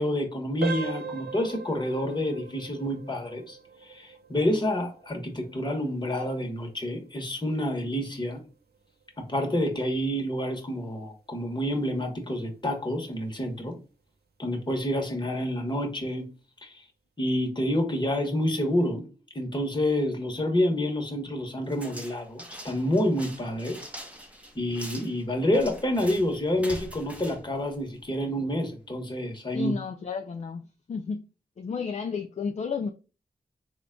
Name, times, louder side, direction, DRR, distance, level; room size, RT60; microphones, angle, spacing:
voice 1, 0.0-3.6 3.9-8.4 9.2-13.8 14.4-16.3 16.6-16.8 17.2-19.1 19.3-23.9 24.5-29.7, left 1 dB, 30° left, 1.1 m, -28 dB
sound 1, 0.6-11.3 11.6-11.9 12.4-12.5 13.0-13.2, right 5 dB, 85° right, 0.5 m, -41 dB
sound 2, 21.7-28.3, equal, 10° right, 0.7 m, -44 dB
voice 2, 29.5-30.6 30.9-31.3 31.6-32.9, left 5 dB, 45° left, 0.4 m, -32 dB
3.6 x 2.3 x 3.7 m
cardioid pair, 60°, 16 cm